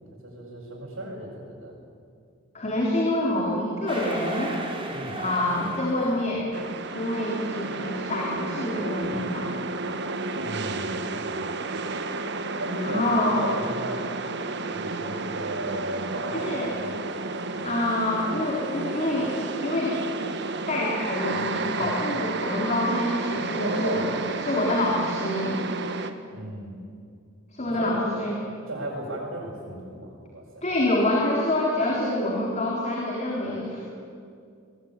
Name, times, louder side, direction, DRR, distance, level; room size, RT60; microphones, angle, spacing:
voice 1, 0.2-1.7 4.9-5.2 10.4-11.2 12.5-14.0 14.7-17.0 21.7-21.9 23.6-24.0 26.3-26.8 27.7-27.9 28.7-30.7, right 1 dB, 85° right, -7 dB, 6.9 m, -35 dB
voice 2, 2.5-4.6 5.2-6.6 6.9-9.5 12.8-13.5 16.3-16.7 17.6-19.3 19.6-20.0 20.7-24.2 24.4-25.6 27.5-28.4 30.6-33.9, left 1 dB, 35° left, -3 dB, 3.9 m, -26 dB
claque estadio, 3.9-6.4, right 2 dB, 25° right, 4.5 m, -35 dB
sound 1, 6.5-26.1, right 3 dB, 60° right, 1.5 m, -32 dB
22.0 x 21.5 x 9.9 m, 2.3 s
head